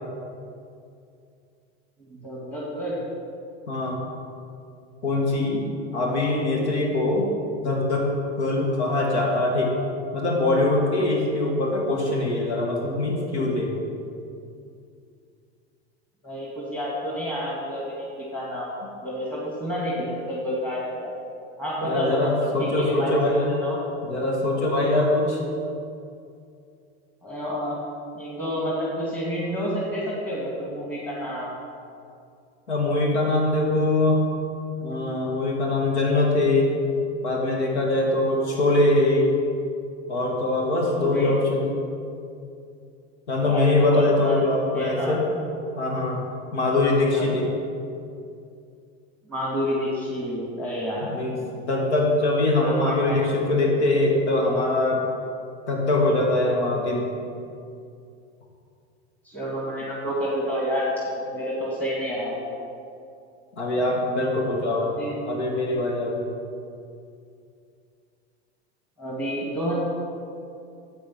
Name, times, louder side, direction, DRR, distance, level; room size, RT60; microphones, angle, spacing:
voice 1, 2.1-3.0 16.2-18.7 19.0-21.1 21.6-23.8 27.2-27.8 28.2-31.5 40.9-41.3 43.4-45.2 47.1-47.2 49.3-51.1 52.6-53.2 59.2-62.4 64.8-65.2 69.0-69.7, equal, 5° left, -6 dB, 2.2 m, -29 dB
voice 2, 3.7-4.0 5.0-5.6 5.9-7.3 7.6-8.1 8.4-9.7 10.1-13.7 21.8-23.5 24.0-25.4 32.7-34.3 34.8-36.7 37.2-39.3 40.1-41.7 43.3-45.3 45.7-46.2 46.5-47.5 51.0-55.0 55.7-57.1 63.6-64.9 65.2-66.2, left 2 dB, 90° left, -1 dB, 2.0 m, -23 dB
8.6 x 8.3 x 6.1 m, 2.5 s
hypercardioid pair, 105°, 33 cm